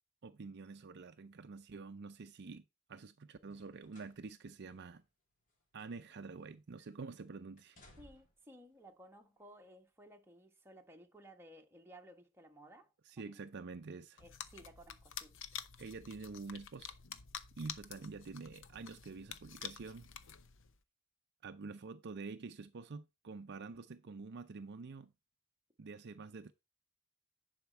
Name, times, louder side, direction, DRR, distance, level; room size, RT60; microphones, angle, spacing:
voice 1, 0.2-5.0 5.7-7.8 13.1-14.2 15.8-17.0 17.6-20.1 21.4-25.1 25.8-26.5, right 4 dB, 55° right, 0.5 m, -47 dB
sound 1, 3.4-4.2 4.6-4.7 5.5-6.5 6.8-7.2 7.6-8.5 9.4-9.5, left 1 dB, 40° left, 3.0 m, -64 dB
voice 2, 8.0-12.9 13.2-13.4 13.9-15.4, right 1 dB, 10° right, 1.3 m, -58 dB
sound 2, 14.2-20.8, left 8 dB, 65° left, 0.8 m, -49 dB
10.5 x 5.1 x 4.4 m
head